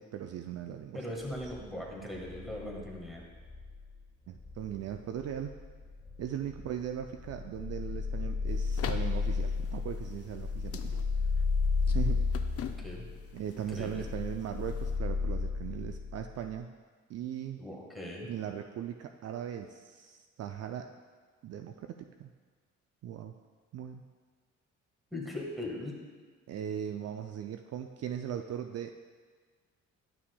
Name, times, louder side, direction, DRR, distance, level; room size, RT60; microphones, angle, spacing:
voice 1, 0.0-1.1 4.3-5.5 6.2-11.0 11.9-12.2 13.3-16.7 17.1-17.6 18.3-20.9 21.4-22.3 23.0-23.3 23.7-24.0 26.5-28.9, right 9 dB, 55° right, 6 dB, 0.4 m, -39 dB
voice 2, 0.9-3.2 12.6-13.0 13.7-14.0 17.6-18.3 25.1-26.0, left 1 dB, ahead, -2 dB, 1.5 m, -39 dB
sound 1, 1.5-16.6, left 4 dB, 20° left, 1.7 m, -34 dB
sound 2, 8.5-15.0, left 8 dB, 50° left, 0.5 m, -46 dB
11.5 x 5.8 x 2.2 m, 1.5 s
cardioid pair, 90°, 30 cm